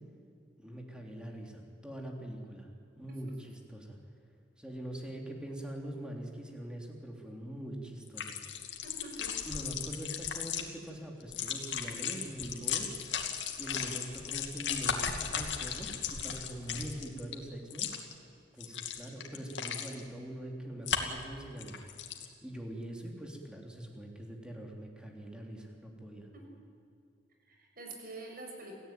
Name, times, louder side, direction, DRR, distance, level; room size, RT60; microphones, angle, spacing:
voice 1, 0.6-2.7 3.0-4.0 4.6-8.3 9.4-13.0 13.6-17.9 18.5-21.8 22.4-26.3, right 1 dB, 5° right, 1 dB, 3.6 m, -43 dB
sound 1, 8.1-10.6 11.2-17.3 17.7-18.1 18.6-20.0 20.9-21.2 21.6-22.2, left 8 dB, 75° left, 2.5 m, -36 dB
voice 2, 8.8-9.3 26.3-26.5 27.4-28.8, right 2 dB, 55° right, 1 dB, 6.2 m, -46 dB
28.0 x 16.5 x 9.3 m, 2.5 s
head